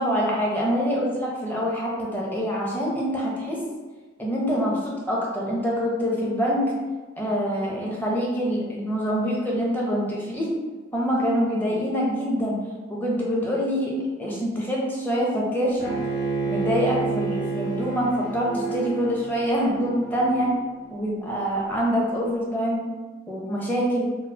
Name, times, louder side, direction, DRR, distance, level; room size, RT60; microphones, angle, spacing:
voice 1, 0.0-3.6 4.2-6.7 7.2-10.5 10.9-12.6 12.9-15.9 16.4-20.5 20.9-22.9 23.3-24.2, equal, 10° left, -4 dB, 0.6 m, -25 dB
Bowed string instrument, 15.8-20.9, right 4 dB, 45° left, 0.7 m, -30 dB
3.8 x 2.1 x 2.7 m, 1.3 s
head